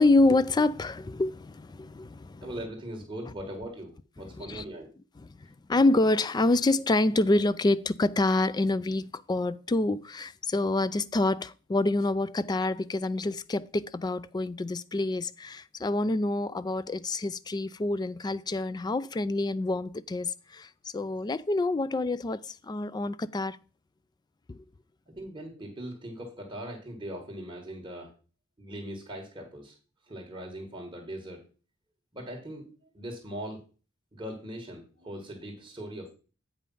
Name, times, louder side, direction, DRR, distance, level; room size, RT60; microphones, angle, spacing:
voice 1, 0.0-2.5 4.4-4.6 5.7-23.6 24.5-24.6, left 2 dB, 20° left, 0.3 m, -27 dB
voice 2, 2.4-4.9 25.1-28.1 28.6-29.7 30.0-31.4 32.1-33.6 34.1-36.1, right 1 dB, 20° right, 1.6 m, -40 dB
8.5 x 5.1 x 5.4 m
head